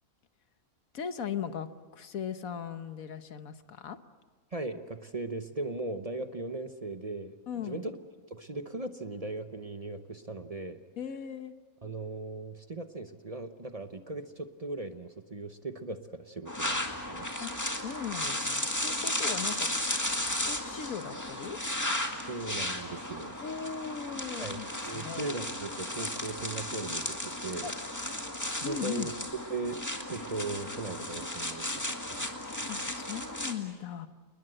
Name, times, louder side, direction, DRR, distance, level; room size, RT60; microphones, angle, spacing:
voice 1, 0.9-4.0 7.5-7.9 11.0-11.5 17.4-19.7 20.3-21.6 23.4-24.7 24.9-25.3 27.6-27.7 28.6-29.1 32.7-34.1, left 8 dB, 80° left, 10 dB, 1.5 m, -38 dB
voice 2, 4.5-7.9 8.3-10.8 11.8-17.3 22.3-23.4 24.4-27.7 28.6-29.8 30.1-32.7, right 3 dB, 30° right, 8 dB, 0.9 m, -38 dB
sound 1, 16.5-33.5, left 1 dB, 10° left, 2.1 m, -34 dB
28.5 x 20.5 x 7.9 m, 1.4 s
omnidirectional pair, 1.4 m